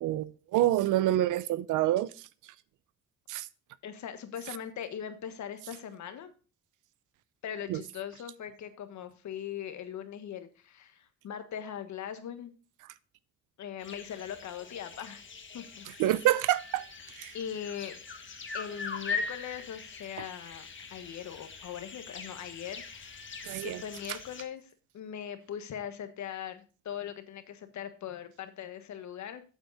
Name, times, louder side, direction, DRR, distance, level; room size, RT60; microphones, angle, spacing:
voice 1, 0.0-2.1 3.3-3.5 7.7-7.8 16.0-16.8 17.2-17.3 23.5-23.8, right 14 dB, 85° right, 0.6 m, -27 dB
voice 2, 3.8-6.3 7.4-12.5 13.6-15.2 15.5-16.1 17.3-18.0 18.5-23.3 23.6-29.4, left 9 dB, 70° left, 1.5 m, -40 dB
sound 1, 13.8-24.4, left 4 dB, 40° left, 1.6 m, -42 dB
8.4 x 8.1 x 4.0 m
cardioid pair, 90°, 30 cm